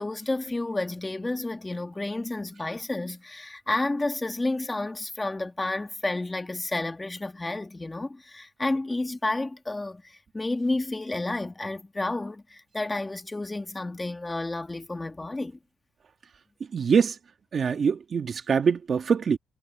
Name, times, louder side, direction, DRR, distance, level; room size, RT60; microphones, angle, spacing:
voice 1, 0.0-10.0 10.3-15.6, left 2 dB, 15° left, 2.0 m, -31 dB
voice 2, 16.7-17.1 17.5-19.4, right 6 dB, 45° right, 1.9 m, -23 dB
cardioid pair, 90°, 0 cm